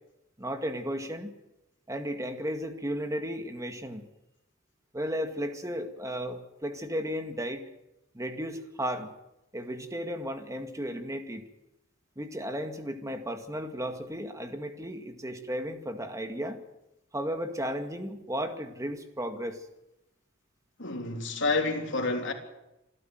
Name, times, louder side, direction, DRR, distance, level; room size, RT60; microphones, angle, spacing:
voice 1, 0.4-1.3 1.9-4.1 4.9-7.6 8.1-9.2 9.5-11.4 12.2-16.6 17.1-19.6, equal, 15° right, 2.0 m, -34 dB
voice 2, 20.8-22.3, left 3 dB, 60° left, 3.5 m, -29 dB
27.0 x 12.0 x 9.2 m
head